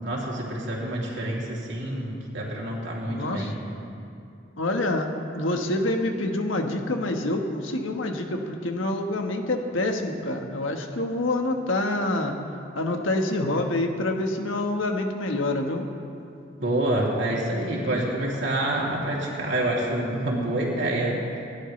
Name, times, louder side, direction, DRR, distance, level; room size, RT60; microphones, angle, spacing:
voice 1, 0.0-3.6 16.6-21.2, right 1 dB, 65° right, -4 dB, 3.0 m, -27 dB
voice 2, 3.0-3.5 4.6-5.1 5.3-12.3 12.7-15.9, left 2 dB, 85° left, 3 dB, 1.4 m, -27 dB
28.0 x 11.0 x 3.3 m, 2.6 s
head